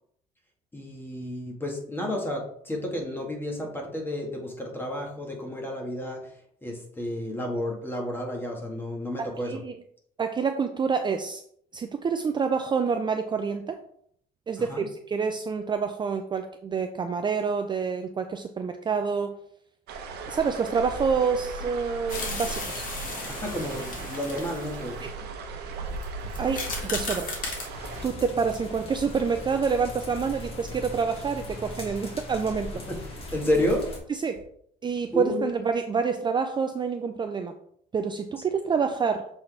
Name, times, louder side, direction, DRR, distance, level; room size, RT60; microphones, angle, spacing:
voice 1, 0.7-6.2 6.6-9.6 14.6-14.9 23.3-25.0 32.9-33.0 33.3-33.9 35.1-35.5, left 1 dB, 15° left, 0 dB, 1.7 m, -31 dB
voice 2, 9.2-9.7 10.2-11.4 11.7-13.8 14.5-19.3 20.3-22.9 25.0-25.1 26.4-27.3 28.0-32.8 34.1-34.4 34.8-37.5 37.9-39.3, right 5 dB, 25° right, 6 dB, 0.4 m, -27 dB
sound 1, 19.9-28.1, right 4 dB, 75° right, 1.0 m, -37 dB
sound 2, 22.1-25.0 25.9-26.0 26.3-27.7, left 3 dB, 55° left, 2.0 m, -35 dB
sound 3, 27.7-34.0, left 1 dB, 35° left, 2.3 m, -39 dB
6.7 x 4.1 x 3.4 m, 0.66 s
cardioid pair, 110°, 17 cm